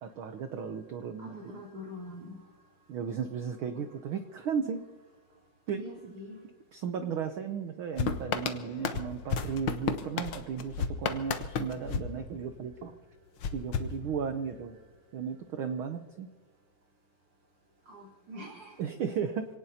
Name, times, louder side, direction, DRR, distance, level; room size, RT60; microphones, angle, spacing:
voice 1, 0.0-1.6 2.9-4.8 5.7-6.1 6.7-12.9 13.5-14.8 15.1-16.3 18.8-19.5, right 7 dB, 80° right, 7 dB, 1.1 m, -35 dB
voice 2, 1.2-2.4 3.7-3.8 5.8-6.4 17.9-18.8, left 1 dB, 55° right, -3 dB, 4.7 m, -44 dB
sound 1, 8.0-12.8 13.4-14.6, left 6 dB, 85° left, 1.0 m, -34 dB
27.0 x 18.5 x 2.8 m, 1.4 s
omnidirectional pair, 3.4 m